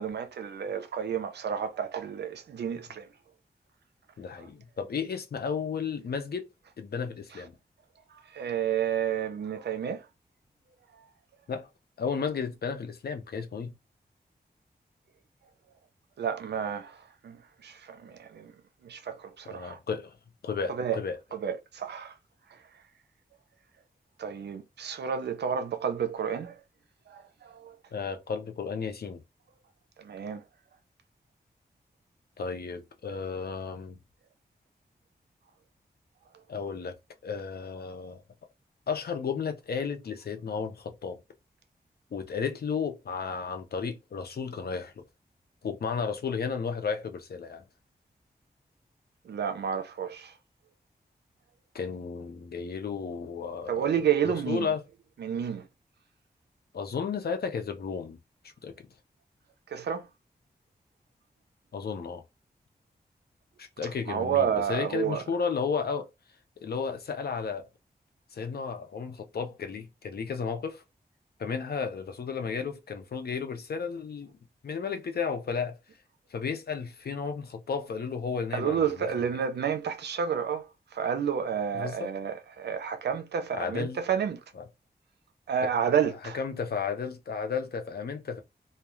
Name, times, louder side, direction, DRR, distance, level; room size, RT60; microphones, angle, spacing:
voice 1, 0.0-3.1 4.4-4.5 8.1-10.1 10.9-11.0 16.2-18.5 18.8-19.8 20.7-21.0 21.3-22.1 22.5-22.6 24.2-26.6 27.1-27.8 30.0-30.4 49.2-50.3 53.7-54.7 55.2-55.7 59.7-60.1 64.1-65.2 78.5-84.4 85.5-86.4, right 8 dB, 85° right, 0.5 m, -30 dB
voice 2, 4.2-6.4 6.8-7.5 11.5-11.7 12.0-13.8 19.5-20.2 20.4-21.2 27.9-29.2 32.4-34.0 36.5-36.9 37.2-38.2 38.9-41.2 42.1-45.0 45.6-47.6 51.7-53.9 54.2-54.8 56.7-58.2 58.4-58.8 61.7-62.2 63.6-66.1 66.6-67.7 68.3-70.8 71.4-74.4 74.6-75.8 76.3-79.1 81.7-82.1 83.5-84.0 84.6-84.7 85.6-85.7 86.3-88.4, left 5 dB, 70° left, 0.6 m, -33 dB
2.3 x 2.2 x 3.0 m
cardioid pair, 55°, 17 cm